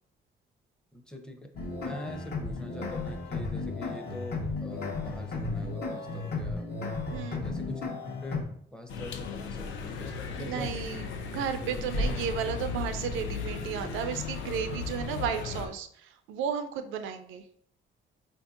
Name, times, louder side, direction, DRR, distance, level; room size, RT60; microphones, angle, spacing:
voice 1, 0.9-1.5 1.8-6.7 7.4-7.9 8.2-11.0, left 1 dB, 5° left, 4 dB, 0.6 m, -43 dB
sound 1, 1.5-8.4, left 3 dB, 55° left, 0.9 m, -34 dB
voice 2, 7.1-7.4 10.4-11.0 11.3-17.4, right 7 dB, 90° right, 8 dB, 0.4 m, -33 dB
sound 2, 8.9-15.7, left 4 dB, 80° left, 0.5 m, -35 dB
4.3 x 2.6 x 2.4 m, 0.63 s
cardioid pair, 90°, 20 cm